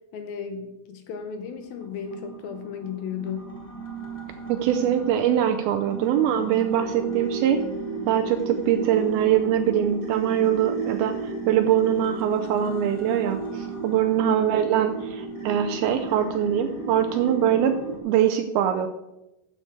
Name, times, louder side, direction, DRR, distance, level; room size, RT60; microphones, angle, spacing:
voice 1, 0.1-3.6 14.2-14.4, left 7 dB, 75° left, 7 dB, 2.4 m, -35 dB
Kalimba Atmosphere, 1.2-18.0, right 4 dB, 10° left, 2.0 m, -34 dB
voice 2, 4.5-7.6 8.1-17.7 18.0-18.9, right 10 dB, 80° right, 8 dB, 2.2 m, -23 dB
13.0 x 7.9 x 4.6 m, 0.93 s
omnidirectional pair, 5.0 m